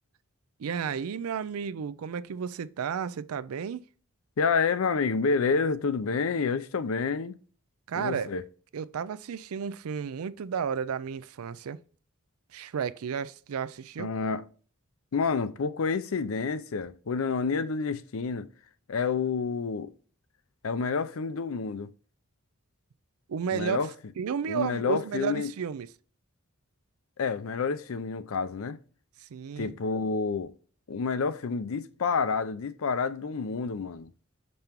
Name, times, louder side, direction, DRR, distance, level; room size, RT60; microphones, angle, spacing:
voice 1, 0.6-3.9 7.9-8.3 8.7-11.8 12.5-14.1 23.3-23.8 24.2-25.9 29.2-29.7, right 7 dB, 90° right, 0.4 m, -32 dB
voice 2, 4.4-7.4 7.9-8.4 14.0-14.4 15.1-18.5 18.9-19.9 20.6-21.9 23.5-23.9 24.5-25.5 27.2-28.8 29.6-30.5 30.9-34.1, left 5 dB, 70° left, 0.5 m, -29 dB
6.7 x 5.3 x 2.9 m
head